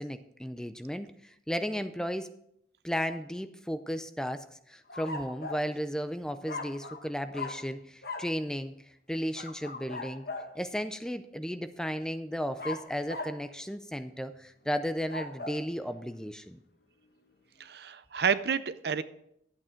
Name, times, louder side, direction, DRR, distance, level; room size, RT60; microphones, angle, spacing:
voice 1, 0.0-2.3 2.8-8.7 9.1-10.2 10.5-16.6, equal, 5° left, 10 dB, 0.4 m, -34 dB
sound 1, 4.9-5.7 6.5-7.1 7.3-7.7 8.0-8.3 9.3-10.6 12.6-13.4 14.9-15.6, left 3 dB, 60° left, 1.1 m, -39 dB
voice 2, 17.6-19.0, right 6 dB, 60° right, 14 dB, 0.5 m, -29 dB
11.0 x 8.7 x 4.5 m, 0.74 s
head